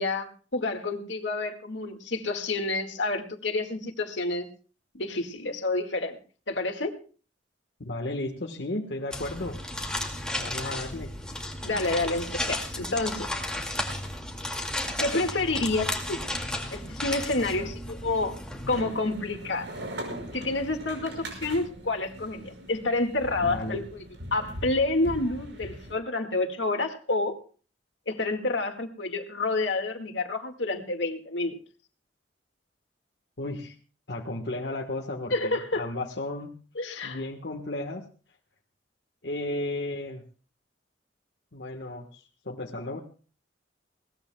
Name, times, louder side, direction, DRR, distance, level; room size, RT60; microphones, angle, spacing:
voice 1, 0.0-4.5 4.9-6.2 6.5-6.9 10.6-10.8 11.6-13.3 15.0-16.2 16.7-18.4 18.7-19.7 20.3-24.0 24.3-27.4 28.1-31.5 35.3-35.9 36.8-37.2, left 2 dB, 80° left, 5 dB, 1.9 m, -29 dB
voice 2, 7.8-9.6 10.4-11.2 17.4-17.7 23.4-23.8 33.4-33.7 34.1-36.6 37.0-38.1 39.2-40.2 41.5-43.0, left 1 dB, 65° left, 1 dB, 1.3 m, -34 dB
sound 1, 9.1-18.8, left 1 dB, 5° left, 2.2 m, -34 dB
sound 2, 18.7-25.9, right 1 dB, 75° right, 5.8 m, -40 dB
21.0 x 18.5 x 2.3 m, 0.39 s
head